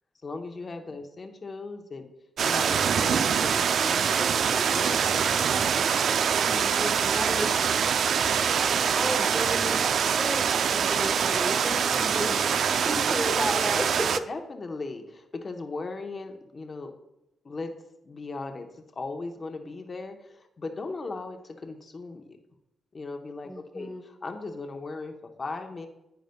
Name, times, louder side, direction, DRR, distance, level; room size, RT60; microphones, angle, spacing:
voice 1, 0.2-2.1 2.4-5.3 11.4-12.1 13.1-13.2 14.3-17.0 17.4-17.7 18.0-22.4 22.9-25.9, left 3 dB, 30° left, 5 dB, 0.9 m, -38 dB
sound 1, 2.4-14.2, right 7 dB, 60° right, 0.4 m, -24 dB
voice 2, 6.4-7.5 9.0-12.4 12.7-14.2 23.5-24.0, equal, ahead, 4 dB, 1.2 m, -33 dB
10.5 x 9.0 x 2.2 m, 0.89 s
cardioid pair, 135°, 0 cm